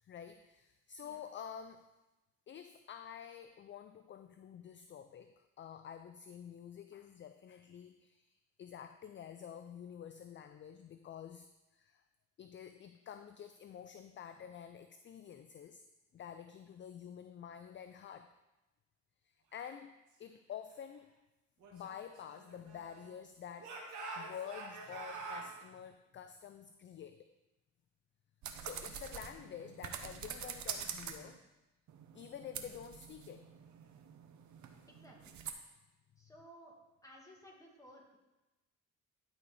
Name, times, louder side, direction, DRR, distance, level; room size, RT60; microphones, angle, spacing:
voice 1, 0.0-1.8 2.5-11.5 11.7-12.0 12.4-15.8 16.1-18.3 19.2-19.9 20.2-21.1 21.7-23.8 24.2-27.3 28.6-31.4 32.1-33.5, left 8 dB, 40° left, 9 dB, 0.4 m, -49 dB
Speech / Shout, 21.6-23.2 23.6-25.5, right 3 dB, 85° right, 1.7 m, -46 dB
sound 1, 28.4-31.4 31.9-35.5, right 8 dB, 70° right, 0.9 m, -46 dB
voice 2, 34.9-35.4 36.2-36.8 37.0-38.2, equal, 10° left, -2 dB, 2.2 m, -57 dB
11.0 x 4.2 x 4.8 m, 1.0 s
cardioid pair, 90°, 30 cm